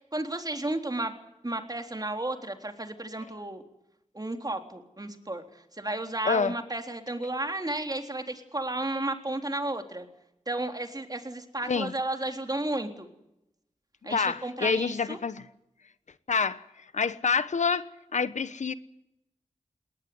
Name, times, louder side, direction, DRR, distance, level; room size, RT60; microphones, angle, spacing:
voice 1, 0.1-1.1 1.4-3.6 4.1-5.4 5.8-10.1 10.5-13.1 14.0-15.2, right 2 dB, 30° right, 3.7 m, -33 dB
voice 2, 6.2-6.6 11.7-11.9 14.0-15.5 16.3-16.6 16.9-18.7, left 5 dB, 85° left, 1.1 m, -27 dB
20.0 x 19.5 x 9.5 m
cardioid pair, 45°, 12 cm